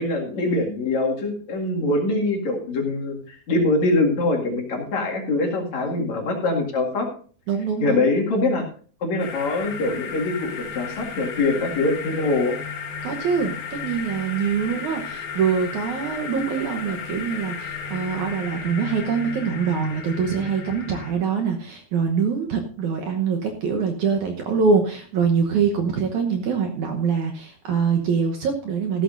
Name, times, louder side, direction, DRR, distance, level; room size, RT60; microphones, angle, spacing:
voice 1, 0.0-7.1 7.8-8.7 9.0-12.6 14.7-14.8, left 2 dB, 50° left, 1 dB, 3.1 m, -23 dB
voice 2, 5.8-6.1 7.5-8.1 13.0-29.0, right 6 dB, 65° right, 3 dB, 2.1 m, -24 dB
sound 1, 9.2-21.1, left 6 dB, 85° left, 4.3 m, -34 dB
15.0 x 12.5 x 2.6 m, 0.43 s
omnidirectional pair, 4.4 m